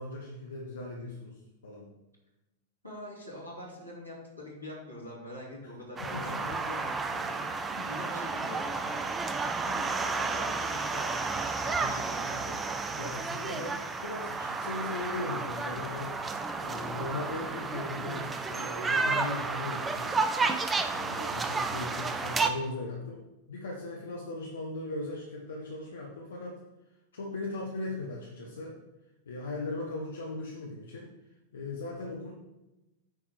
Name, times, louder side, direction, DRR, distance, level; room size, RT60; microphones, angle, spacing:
voice 1, 0.0-1.9 6.0-6.4 13.0-16.2 16.6-20.2 20.9-26.6 27.1-28.7 29.3-31.1 31.5-32.3, left 2 dB, 65° left, -3 dB, 1.3 m, -38 dB
voice 2, 2.8-7.4 7.6-9.1 9.7-12.6, left 1 dB, 90° left, -5 dB, 3.1 m, -44 dB
sound 1, 6.0-22.5, right 4 dB, 15° right, 0.7 m, -32 dB
9.4 x 3.9 x 6.4 m, 1.0 s
figure-of-eight pair, 90°, 0 cm